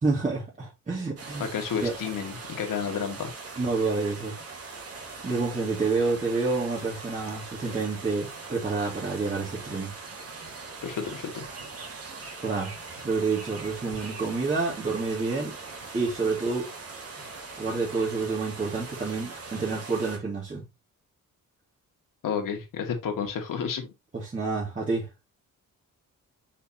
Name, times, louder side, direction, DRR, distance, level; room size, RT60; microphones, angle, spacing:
voice 1, 0.0-1.5 1.8-2.0 3.6-4.4 5.2-9.9 12.4-12.7 13.0-15.6 15.9-16.7 17.6-20.7 24.1-25.1, right 4 dB, 25° right, 2.7 m, -28 dB
sound 1, 1.2-20.2, right 4 dB, 45° right, 2.2 m, -41 dB
voice 2, 1.4-3.3 10.8-11.5 22.2-23.9, left 7 dB, 75° left, 2.2 m, -31 dB
6.8 x 5.9 x 3.0 m
wide cardioid pair, 150°, 33 cm